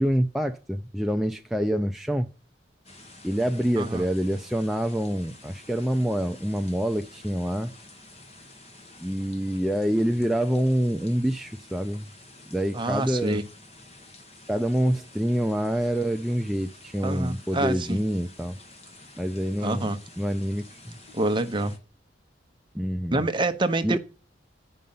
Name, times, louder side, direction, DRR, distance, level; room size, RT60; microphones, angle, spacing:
voice 1, 0.0-2.3 3.2-7.7 9.0-12.1 12.5-13.4 14.5-18.6 19.2-19.9 20.2-21.0 22.7-23.2 23.8-24.0, equal, ahead, 0.4 m, -26 dB
sound 1, 2.8-21.8, left 2 dB, 35° left, 1.7 m, -50 dB
voice 2, 3.8-4.1 12.7-13.4 17.0-18.0 19.6-20.0 21.1-21.7 23.1-24.0, right 2 dB, 25° right, 0.8 m, -26 dB
8.5 x 5.4 x 5.5 m
head